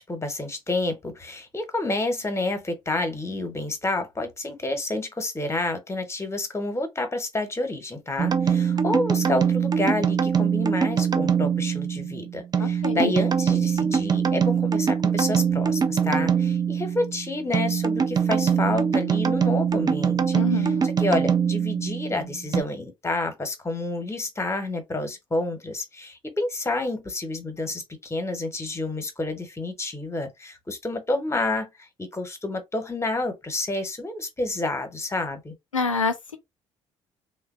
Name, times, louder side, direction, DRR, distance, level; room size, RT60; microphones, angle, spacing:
voice 1, 0.0-35.5, left 2 dB, 15° left, 1.0 m, -29 dB
sound 1, 8.2-22.6, right 7 dB, 25° right, 0.4 m, -23 dB
voice 2, 12.6-13.1 20.3-20.8 35.7-36.4, left 3 dB, 90° left, 0.4 m, -27 dB
3.2 x 2.1 x 2.4 m
figure-of-eight pair, 45°, 16 cm